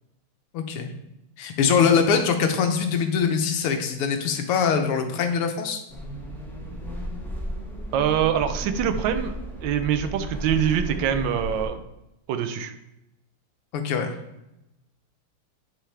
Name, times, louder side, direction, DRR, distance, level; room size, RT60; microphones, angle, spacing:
voice 1, 0.5-0.9 1.4-5.8 13.7-14.1, left 6 dB, 80° left, 6 dB, 1.7 m, -23 dB
sound 1, 5.9-11.7, equal, ahead, 0.5 m, -34 dB
voice 2, 7.9-9.3 9.6-11.8 12.3-12.7, right 9 dB, 70° right, 8 dB, 1.2 m, -24 dB
10.0 x 4.7 x 3.4 m, 0.88 s
omnidirectional pair, 2.4 m